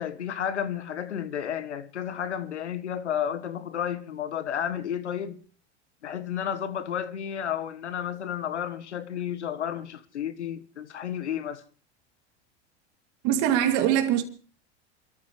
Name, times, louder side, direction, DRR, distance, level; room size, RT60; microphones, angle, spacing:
voice 1, 0.0-5.4 6.0-11.6, left 9 dB, 90° left, 1.5 m, -32 dB
voice 2, 13.2-14.2, right 11 dB, 55° right, 2.5 m, -22 dB
27.0 x 13.5 x 3.2 m
hypercardioid pair, 95°, 34 cm